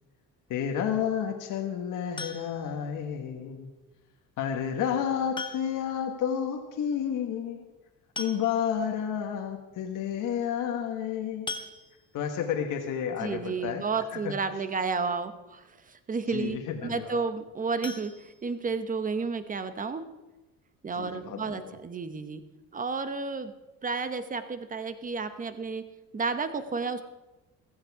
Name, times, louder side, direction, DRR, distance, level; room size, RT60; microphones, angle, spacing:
voice 1, 0.5-3.7 4.4-7.6 8.2-11.6 12.1-13.8 14.1-14.3 16.3-17.2 21.0-21.6, left 8 dB, 70° left, 3 dB, 1.5 m, -31 dB
sound 1, 2.2-2.8 4.3-4.4 5.3-6.0 6.3-6.4 6.7-6.8 7.8-7.9 8.2-8.9 9.4-9.5 9.9-10.0 11.5-12.3 17.8-19.0 19.4-19.5 19.9-20.0 20.4-20.5, left 3 dB, 15° left, 0.9 m, -40 dB
voice 2, 13.2-20.0 20.8-22.4 22.7-23.5 23.8-27.0, right 4 dB, 25° right, 10 dB, 1.1 m, -32 dB
15.5 x 14.5 x 4.8 m, 1.1 s
cardioid pair, 125°, 33 cm